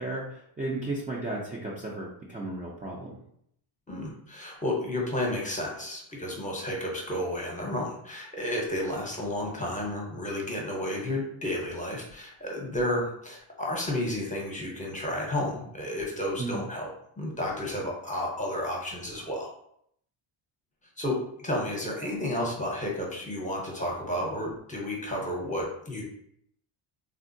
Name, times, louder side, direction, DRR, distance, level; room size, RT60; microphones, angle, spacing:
voice 1, 0.0-3.2 16.4-16.7, right 2 dB, 15° right, -4 dB, 0.4 m, -34 dB
voice 2, 3.9-16.9 17.2-19.5 21.0-26.0, left 1 dB, 15° left, -2 dB, 0.7 m, -32 dB
3.5 x 2.1 x 2.6 m, 0.70 s
cardioid pair, 110°, 49 cm